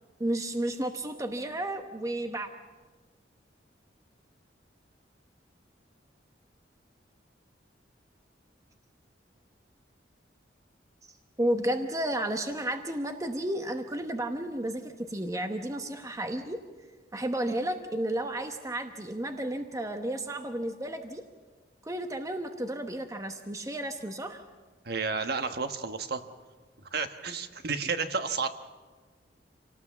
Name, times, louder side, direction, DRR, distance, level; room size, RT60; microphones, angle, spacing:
voice 1, 0.2-2.5 11.4-16.6 17.1-21.2 21.8-24.4, right 1 dB, 20° right, 6 dB, 1.0 m, -32 dB
voice 2, 24.8-26.2 26.9-28.5, right 4 dB, 60° right, 8 dB, 1.2 m, -31 dB
27.0 x 18.5 x 7.2 m, 1.4 s
head